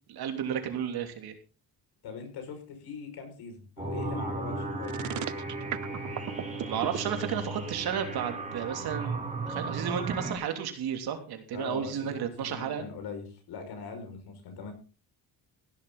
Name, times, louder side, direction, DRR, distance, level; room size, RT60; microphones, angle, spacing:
voice 1, 0.1-1.3 6.6-9.2 9.5-12.9, right 8 dB, 75° right, 5 dB, 3.1 m, -33 dB
voice 2, 2.0-5.3 11.5-14.7, left 5 dB, 80° left, 5 dB, 6.1 m, -42 dB
sound 1, 3.8-10.3, right 2 dB, 20° right, 4.2 m, -35 dB
sound 2, 4.8-7.0, right 12 dB, 50° right, 0.8 m, -35 dB
16.0 x 12.0 x 4.1 m, 0.34 s
cardioid pair, 140°, 38 cm